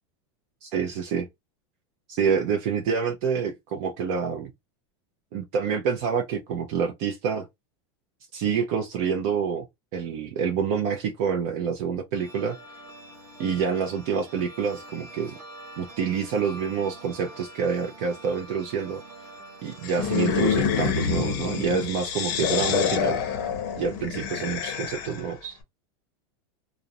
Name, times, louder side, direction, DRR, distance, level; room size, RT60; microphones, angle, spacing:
voice 1, 0.6-1.3 2.1-4.5 5.3-7.5 8.3-9.6 9.9-12.6 13.4-15.4 15.8-19.0 19.6-23.2 23.8-25.6, right 6 dB, 35° right, 0.4 m, -27 dB
sound 1, 12.1-21.7, right 1 dB, 10° right, 0.9 m, -45 dB
sound 2, 19.8-25.3, left 7 dB, 45° left, 0.6 m, -27 dB
2.4 x 2.0 x 2.7 m
supercardioid pair, 175°, 14 cm